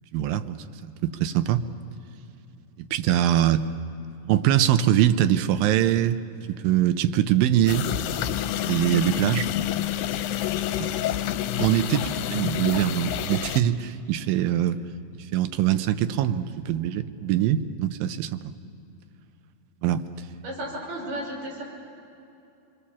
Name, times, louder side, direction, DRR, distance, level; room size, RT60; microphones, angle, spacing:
voice 1, 0.1-1.6 2.8-3.7 4.3-6.2 6.5-7.9 8.7-9.5 10.8-10.9 11.6-14.8 15.1-18.4 19.8-20.1, right 11 dB, 85° right, 10 dB, 2.5 m, -23 dB
sound 1, 7.7-13.6, left 11 dB, 80° left, 2.5 m, -28 dB
voice 2, 20.4-21.6, right 1 dB, 70° right, -4 dB, 7.4 m, -33 dB
26.0 x 22.5 x 7.2 m, 2.7 s
omnidirectional pair, 4.0 m